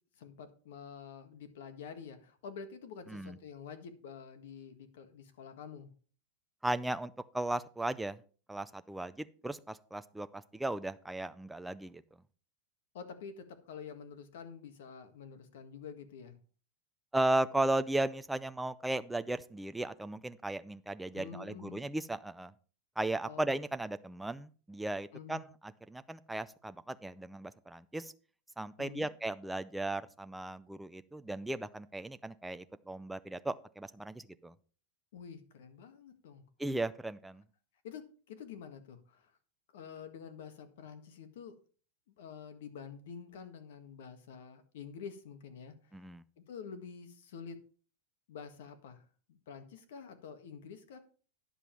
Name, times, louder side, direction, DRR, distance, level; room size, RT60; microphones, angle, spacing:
voice 1, 0.2-5.9 12.9-16.4 21.1-21.8 23.2-23.6 25.1-25.4 28.8-29.1 35.1-36.4 37.8-39.3 39.7-41.5 42.2-45.9 46.4-47.6 48.3-49.0 49.3-51.0, left 6 dB, 65° left, 8 dB, 1.7 m, -48 dB
voice 2, 6.6-8.2 8.5-12.0 17.1-22.5 23.0-28.1 28.6-34.5 36.6-37.4 45.9-46.2, right 2 dB, 5° right, 11 dB, 0.4 m, -36 dB
10.0 x 7.2 x 4.6 m, 0.41 s
supercardioid pair, 175°, 0 cm